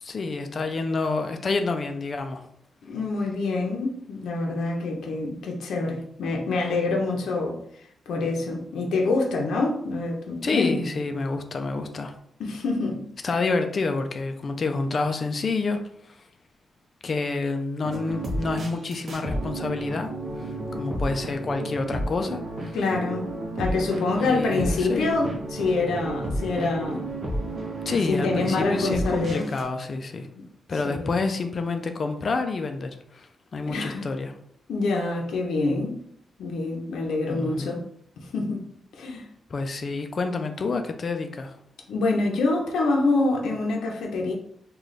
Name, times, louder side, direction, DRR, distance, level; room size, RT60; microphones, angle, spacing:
voice 1, 0.0-2.5 10.4-12.1 13.2-15.8 17.0-20.1 20.4-22.8 24.2-25.1 27.9-30.3 30.7-34.3 37.3-37.8 39.5-41.5, left 3 dB, 35° left, 6 dB, 0.3 m, -28 dB
voice 2, 2.8-7.6 8.1-10.9 12.4-13.1 22.7-23.3 23.6-27.0 28.1-29.5 30.4-30.5 30.8-31.1 33.7-34.1 34.7-35.9 36.4-37.8 38.2-38.6 39.0-39.2 41.9-44.3, left 3 dB, 85° left, 0 dB, 0.6 m, -26 dB
sound 1, 17.8-29.6, right 1 dB, 40° right, 0.7 m, -32 dB
3.2 x 2.2 x 3.9 m, 0.68 s
wide cardioid pair, 155°, 0 cm